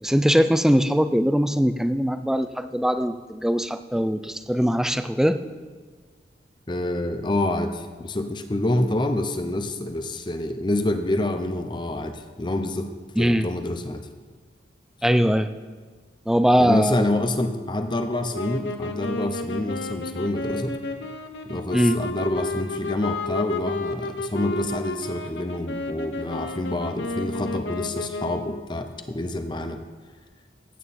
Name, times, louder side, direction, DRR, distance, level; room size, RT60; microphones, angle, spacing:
voice 1, 0.0-5.4 13.2-13.5 15.0-15.5 16.3-17.1 21.7-22.0, equal, 5° right, 11 dB, 0.4 m, -21 dB
voice 2, 6.7-12.9 13.2-14.0 16.6-20.7 21.4-29.8, left 1 dB, 25° left, 7 dB, 0.8 m, -27 dB
sound 1, 18.3-28.7, left 2 dB, 90° left, 1.0 m, -32 dB
15.5 x 9.2 x 4.3 m, 1.5 s
head